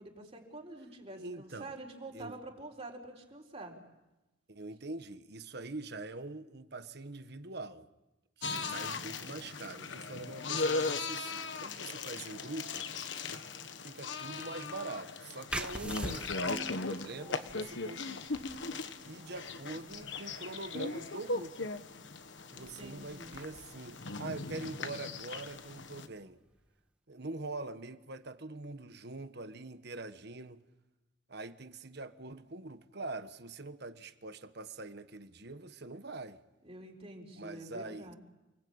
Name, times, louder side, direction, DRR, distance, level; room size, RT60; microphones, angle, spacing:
voice 1, 0.0-3.8 8.4-8.7 22.5-23.4 36.6-38.2, right 2 dB, 30° right, 4.6 m, -47 dB
voice 2, 1.1-1.7 2.1-2.4 4.5-7.9 8.4-12.9 13.8-18.2 19.0-21.7 22.5-26.4 27.1-30.6 31.3-36.4 37.4-38.1, right 2 dB, 55° right, 1.4 m, -44 dB
sound 1, 8.4-26.1, left 3 dB, 70° left, 1.4 m, -38 dB
sound 2, 15.5-26.8, right 1 dB, 5° right, 1.2 m, -47 dB
sound 3, 16.1-19.6, right 1 dB, 25° left, 3.5 m, -52 dB
29.5 x 20.5 x 8.8 m
head